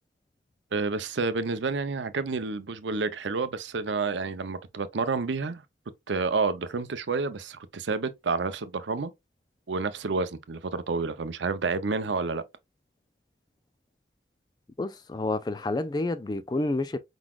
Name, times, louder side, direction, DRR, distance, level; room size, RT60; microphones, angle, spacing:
voice 1, 0.7-5.6 6.1-9.1 9.7-12.4, right 4 dB, 80° right, 0.6 m, -29 dB
voice 2, 14.8-17.0, left 2 dB, 20° left, 0.3 m, -29 dB
4.8 x 3.9 x 2.3 m
head